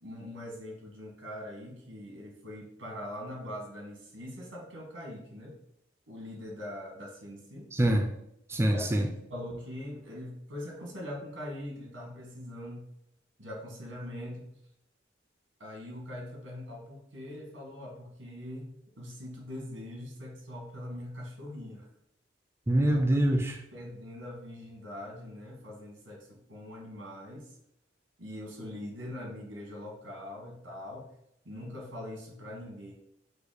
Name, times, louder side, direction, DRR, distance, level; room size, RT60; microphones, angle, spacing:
voice 1, 0.0-5.6 6.1-7.7 8.7-9.0 9.3-12.9 13.4-14.5 15.6-21.9 22.8-23.0 23.7-27.5 28.2-31.1 31.4-32.9, left 1 dB, 85° right, 0 dB, 1.5 m, -42 dB
voice 2, 7.7-8.1 8.5-9.1 22.7-23.6, right 1 dB, 15° right, 4 dB, 0.3 m, -25 dB
5.0 x 2.2 x 4.8 m, 0.77 s
head